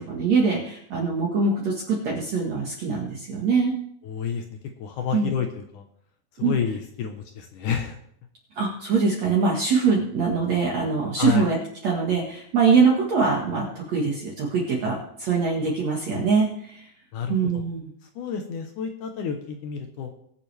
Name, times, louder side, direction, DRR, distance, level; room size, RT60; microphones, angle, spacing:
voice 1, 0.0-3.7 5.1-5.3 6.4-6.6 8.6-11.6 11.8-16.9 17.3-17.8, right 4 dB, 55° right, -2 dB, 2.2 m, -23 dB
voice 2, 4.0-4.4 4.8-5.8 6.4-8.0 11.2-11.5 17.1-17.6 18.2-20.1, left 7 dB, 75° left, 4 dB, 1.9 m, -29 dB
21.5 x 7.5 x 3.4 m, 0.68 s
omnidirectional pair, 4.9 m